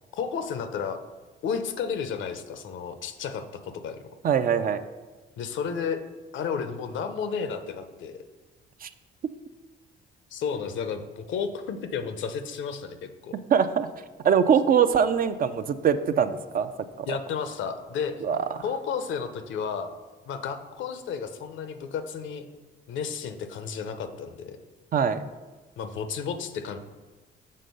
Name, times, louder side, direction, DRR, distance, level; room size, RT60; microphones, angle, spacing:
voice 1, 0.1-1.0 1.4-4.1 5.4-6.0 6.3-8.2 10.3-13.3 17.1-18.2 18.6-19.9 20.3-22.5 22.9-24.6 25.8-26.8, left 6 dB, 75° left, 9 dB, 0.7 m, -32 dB
voice 2, 4.2-4.8 8.8-8.9 13.3-13.9 14.2-16.7 17.0-17.1 18.2-18.4 24.9-25.2, right 7 dB, 45° right, 11 dB, 0.4 m, -22 dB
6.5 x 3.8 x 5.3 m, 1.2 s
cardioid pair, 90°, 20 cm